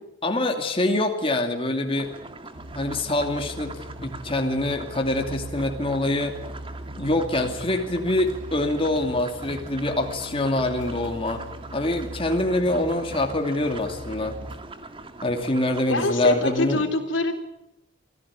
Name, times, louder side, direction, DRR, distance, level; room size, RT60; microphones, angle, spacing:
voice 1, 0.2-2.1 2.7-6.4 7.0-11.4 11.7-14.4 15.2-16.9, left 1 dB, 30° left, 3 dB, 2.6 m, -25 dB
sound 1, 1.9-16.6, right 2 dB, 30° right, 2.1 m, -42 dB
sound 2, 2.5-14.6, right 1 dB, 75° right, 5.2 m, -40 dB
voice 2, 15.9-17.3, left 2 dB, 80° left, 6 dB, 3.7 m, -24 dB
25.5 x 16.5 x 8.6 m, 0.92 s
head